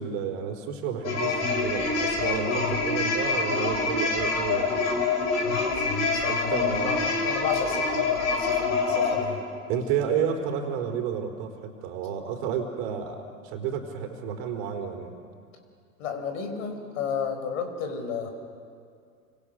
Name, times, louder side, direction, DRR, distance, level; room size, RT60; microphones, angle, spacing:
voice 1, 0.0-4.8 6.3-7.1 9.7-15.2, right 7 dB, 45° right, 4 dB, 4.3 m, -31 dB
sound 1, 1.0-9.2, left 4 dB, 40° left, 5.8 m, -26 dB
voice 2, 5.4-9.4 16.0-18.3, left 6 dB, 55° left, 6 dB, 4.9 m, -33 dB
29.5 x 26.0 x 6.6 m, 2.2 s
figure-of-eight pair, 95°, 44 cm